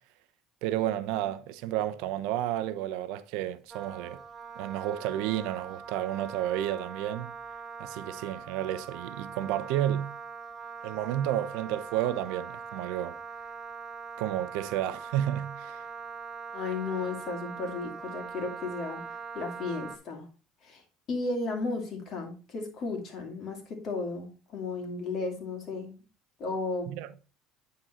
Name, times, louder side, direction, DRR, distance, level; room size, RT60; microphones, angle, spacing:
voice 1, 0.6-4.2 4.6-7.3 7.8-10.1 10.8-13.2 14.2-15.8 26.9-27.1, right 12 dB, 75° right, 0.6 m, -31 dB
Wind instrument woodwind instrument, 3.7-20.0, right 5 dB, 30° right, 0.9 m, -42 dB
voice 2, 16.5-19.0 19.3-20.3 20.6-20.8 21.1-26.0 26.4-26.9, left 3 dB, 55° left, 2.4 m, -34 dB
9.2 x 3.8 x 4.2 m
supercardioid pair, 85°, 0 cm